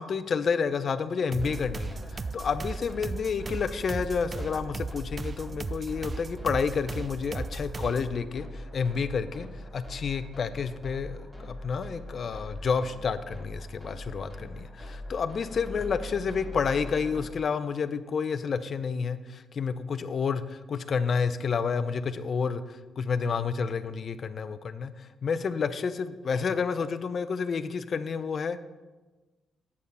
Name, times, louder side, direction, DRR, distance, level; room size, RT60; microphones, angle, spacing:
voice 1, 0.0-9.5 9.7-28.6, left 5 dB, 50° left, 12 dB, 0.6 m, -30 dB
sound 1, 1.3-8.2, right 4 dB, 35° right, 0.3 m, -37 dB
sound 2, 1.4-17.3, left 1 dB, 5° right, 2.0 m, -42 dB
8.5 x 6.4 x 5.4 m, 1.2 s
cardioid pair, 90°, 0 cm